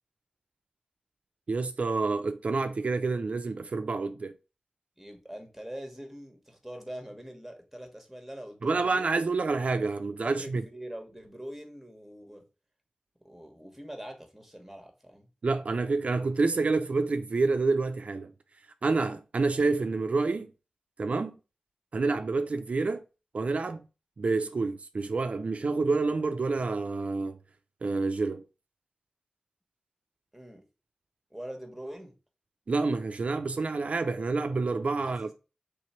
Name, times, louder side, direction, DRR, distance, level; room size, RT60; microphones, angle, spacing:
voice 1, 1.5-4.3 8.6-10.6 15.4-18.3 18.8-20.5 21.0-21.4 21.9-23.0 23.3-23.8 24.2-27.4 27.8-28.4 32.7-35.3, right 3 dB, 70° right, 0.3 m, -28 dB
voice 2, 5.0-9.1 10.2-12.5 13.2-15.3 23.7-23.8 30.3-30.6 31.3-32.1 34.9-35.3, right 1 dB, 5° right, 1.2 m, -43 dB
3.3 x 3.0 x 4.3 m
wide cardioid pair, 55°, 2 cm